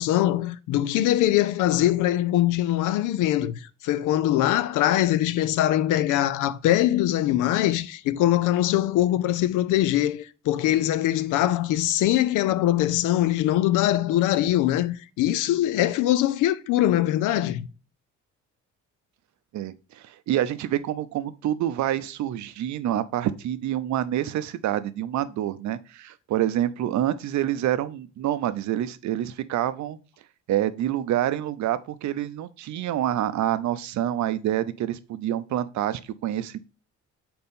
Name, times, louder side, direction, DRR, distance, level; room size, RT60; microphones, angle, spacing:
voice 1, 0.0-17.7, left 13 dB, 90° left, 0.5 m, -22 dB
voice 2, 19.5-30.0 30.5-36.6, right 12 dB, 70° right, 0.6 m, -27 dB
4.4 x 4.2 x 5.3 m
cardioid pair, 90°, 30 cm